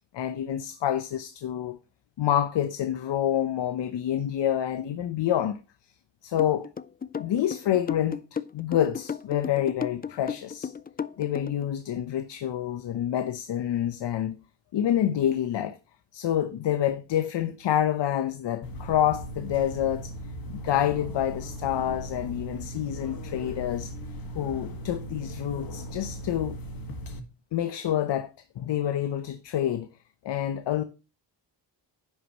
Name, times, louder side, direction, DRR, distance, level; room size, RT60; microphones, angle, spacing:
voice 1, 0.1-1.8 2.2-5.6 6.2-6.7 7.2-10.7 11.2-14.4 14.7-15.8 16.1-20.1 20.5-23.9 24.3-26.6 27.5-29.9 30.2-30.8, left 11 dB, 70° left, 0.9 m, -27 dB
sound 1, 6.4-11.7, left 7 dB, 20° left, 0.4 m, -33 dB
sound 2, 18.6-27.2, equal, 50° left, 1.8 m, -38 dB
10.5 x 8.1 x 3.0 m
cardioid pair, 85°, 44 cm